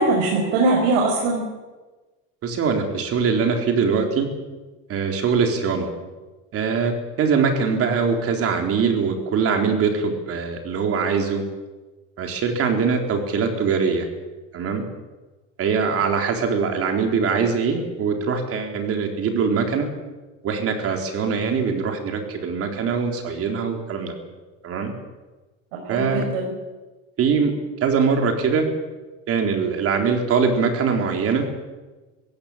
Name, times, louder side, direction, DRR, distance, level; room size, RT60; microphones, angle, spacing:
voice 1, 0.0-1.4 25.8-26.4, right 2 dB, 85° right, -1 dB, 6.1 m, -21 dB
voice 2, 2.4-4.3 4.9-5.9 6.5-11.4 12.2-14.1 14.5-14.8 15.6-19.9 20.4-24.1 24.6-24.9 25.9-26.3 27.2-27.5 27.8-28.7 29.3-31.5, right 5 dB, 45° right, 3 dB, 4.3 m, -22 dB
20.5 x 16.5 x 8.9 m, 1.2 s
cardioid pair, 130°, 32 cm